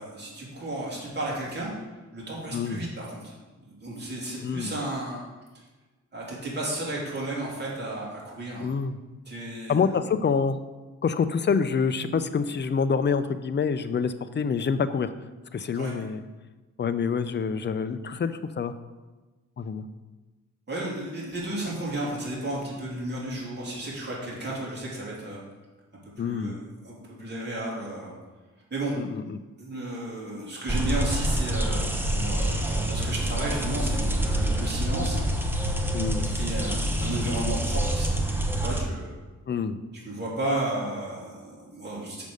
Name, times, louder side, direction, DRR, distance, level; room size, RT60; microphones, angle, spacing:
voice 1, 0.0-1.7 2.1-5.2 6.1-8.7 9.3-9.9 15.7-15.9 20.7-25.4 26.0-28.1 28.7-28.9 29.6-35.2 36.2-38.1 38.6-39.1 40.0-42.3, right 1 dB, 35° right, -6 dB, 2.9 m, -33 dB
voice 2, 2.5-2.9 4.4-4.7 8.6-9.0 9.7-10.6 11.0-15.1 15.5-16.2 16.8-18.7 19.6-19.9 26.2-26.5 29.0-29.4 35.9-36.3 39.5-39.8, left 6 dB, 35° left, 11 dB, 0.5 m, -27 dB
sound 1, 30.7-38.8, right 1 dB, 5° right, 0.9 m, -27 dB
6.5 x 5.3 x 6.4 m, 1.2 s
wide cardioid pair, 110°, 31 cm